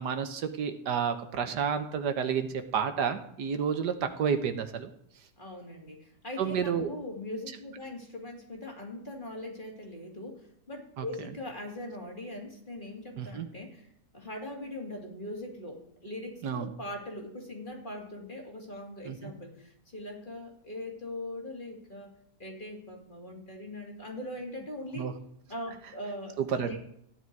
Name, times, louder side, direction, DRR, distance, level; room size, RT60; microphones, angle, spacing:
voice 1, 0.0-4.9 6.4-6.9 11.0-11.1 13.2-13.5 16.4-16.7 19.0-19.3 25.0-25.1 26.4-26.8, right 7 dB, 75° right, 8 dB, 1.6 m, -30 dB
voice 2, 5.4-10.4 10.7-13.9 14.1-22.1 22.4-25.1 25.5-26.8, left 1 dB, 30° left, 0 dB, 2.8 m, -41 dB
15.0 x 10.0 x 4.6 m, 0.73 s
omnidirectional pair, 1.8 m